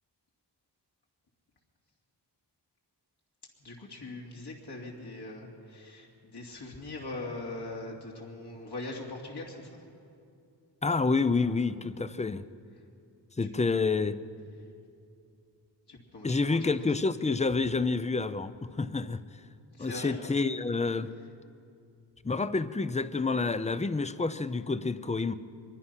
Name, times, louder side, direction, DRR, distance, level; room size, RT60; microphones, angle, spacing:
voice 1, 3.6-9.8 15.9-16.7 19.8-20.2, left 2 dB, 65° left, -2 dB, 2.8 m, -41 dB
voice 2, 10.8-12.5 13.4-14.2 16.2-19.2 19.8-21.1 22.2-25.3, left 4 dB, 15° left, 14 dB, 0.5 m, -28 dB
23.5 x 22.5 x 5.8 m, 2.5 s
wide cardioid pair, 135°, 43 cm